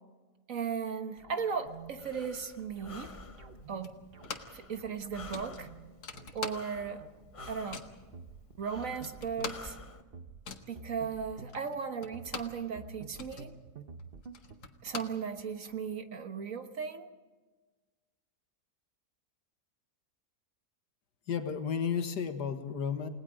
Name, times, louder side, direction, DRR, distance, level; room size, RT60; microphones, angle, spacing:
voice 1, 0.5-3.2 3.7-3.9 4.5-5.7 6.3-7.0 7.5-7.9 8.6-9.8 10.7-13.5 14.8-17.1, right 6 dB, 55° right, 7 dB, 1.6 m, -36 dB
sound 1, 1.2-14.6, right 4 dB, 40° right, 1.1 m, -51 dB
Breathing, 1.7-10.0, left 3 dB, 30° left, 0.7 m, -51 dB
sound 2, 3.8-4.7 4.9-5.0 5.3-7.0 7.3-8.0 8.5-8.6 8.8-12.7 13.0-15.7, left 5 dB, 70° left, 2.1 m, -44 dB
voice 2, 21.3-23.1, left 7 dB, 85° left, 7 dB, 2.1 m, -32 dB
29.5 x 19.0 x 5.2 m, 1.3 s
omnidirectional pair, 1.7 m